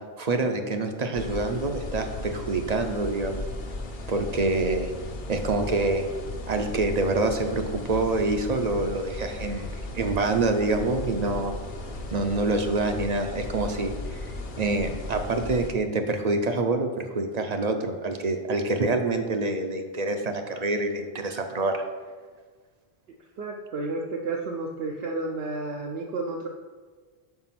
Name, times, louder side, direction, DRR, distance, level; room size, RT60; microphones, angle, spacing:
voice 1, 0.2-3.4 4.1-4.9 5.3-6.1 6.5-11.5 12.1-14.2 14.6-21.8, right 2 dB, 50° right, 6 dB, 0.6 m, -26 dB
sound 1, 1.1-15.7, left 2 dB, 55° left, 0.9 m, -36 dB
voice 2, 23.4-26.5, right 3 dB, 75° right, 0 dB, 0.9 m, -31 dB
5.8 x 4.8 x 5.8 m, 1.5 s
omnidirectional pair, 1.0 m